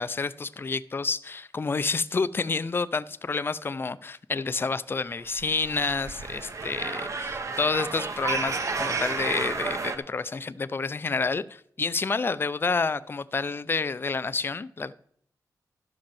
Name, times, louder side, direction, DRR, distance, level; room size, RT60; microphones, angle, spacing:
voice 1, 0.0-14.9, left 4 dB, 35° left, 0.4 m, -29 dB
sound 1, 5.3-10.0, right 4 dB, 50° right, 1.2 m, -32 dB
12.5 x 5.3 x 7.0 m
wide cardioid pair, 105°, 7 cm